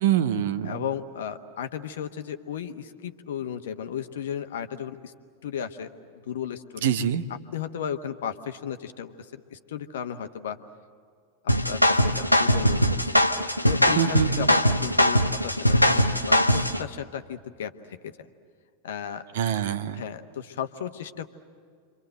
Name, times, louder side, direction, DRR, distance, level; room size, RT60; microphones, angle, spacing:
voice 1, 0.0-0.8 6.8-7.2 14.0-14.5 19.3-20.0, right 9 dB, 55° right, 12 dB, 0.9 m, -25 dB
voice 2, 0.6-5.1 5.4-5.9 6.3-6.9 7.5-10.6 11.7-13.1 13.6-18.3 18.8-19.2 19.9-21.3, left 8 dB, 60° left, 8 dB, 1.2 m, -34 dB
sound 1, 11.5-16.8, equal, 90° left, 0.8 m, -21 dB
28.5 x 25.0 x 7.9 m, 2.1 s
figure-of-eight pair, 90°, 0 cm